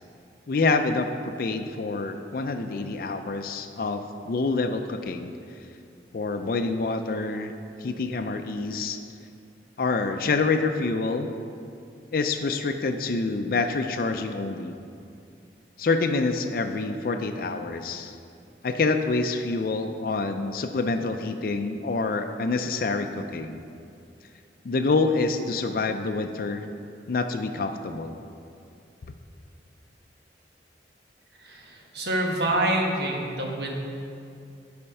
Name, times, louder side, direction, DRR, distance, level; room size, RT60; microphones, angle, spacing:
voice 1, 0.5-5.3 6.1-7.5 7.8-9.0 9.8-11.3 12.1-14.8 15.8-18.1 18.6-23.6 24.6-26.7 27.1-28.2, left 3 dB, 50° left, 6 dB, 0.4 m, -27 dB
voice 2, 31.9-33.7, right 1 dB, 70° right, 0 dB, 1.2 m, -26 dB
10.0 x 4.3 x 5.5 m, 2.5 s
head